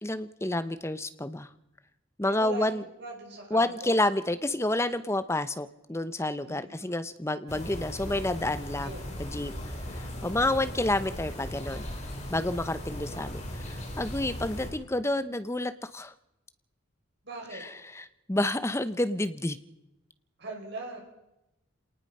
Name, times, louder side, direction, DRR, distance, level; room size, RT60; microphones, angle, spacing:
voice 1, 0.0-1.5 2.2-2.8 3.5-8.9 9.2-9.5 10.0-11.9 12.3-16.1 17.5-19.6, left 1 dB, 15° left, 12 dB, 0.7 m, -29 dB
voice 2, 2.2-4.0 6.4-6.9 8.8-9.1 17.2-17.6 20.4-21.0, right 2 dB, 55° right, 1 dB, 6.1 m, -40 dB
sound 1, 7.5-14.7, equal, 35° left, 3.8 m, -38 dB
27.0 x 19.0 x 5.5 m, 0.90 s
head